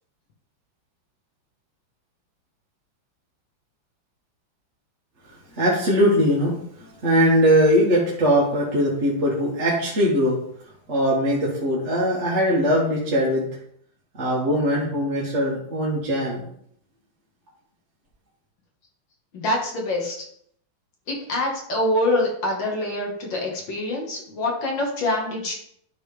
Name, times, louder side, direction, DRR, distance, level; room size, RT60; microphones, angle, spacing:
voice 1, 5.3-6.5 6.8-10.4 10.9-13.5 14.1-16.4, equal, 35° right, -6 dB, 1.8 m, -21 dB
voice 2, 19.3-20.3 21.1-25.5, left 1 dB, 70° left, -1 dB, 2.3 m, -25 dB
12.0 x 4.1 x 3.4 m, 0.68 s
omnidirectional pair, 2.2 m